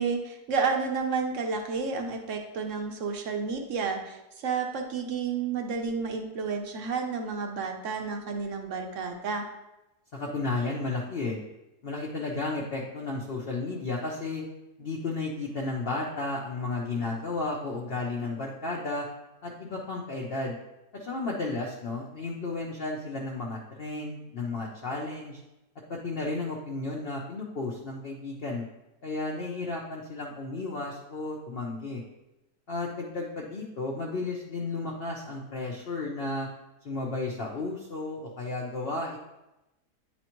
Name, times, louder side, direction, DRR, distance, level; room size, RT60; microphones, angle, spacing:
voice 1, 0.0-9.4, right 5 dB, 55° right, 4 dB, 1.0 m, -31 dB
voice 2, 10.1-11.4 11.8-14.4 14.8-19.1 19.4-20.6 20.9-25.4 25.9-28.7 29.0-32.0 32.7-36.5 36.8-39.2, left 3 dB, 45° left, -2 dB, 0.8 m, -33 dB
9.4 x 4.2 x 3.0 m, 0.94 s
omnidirectional pair, 1.7 m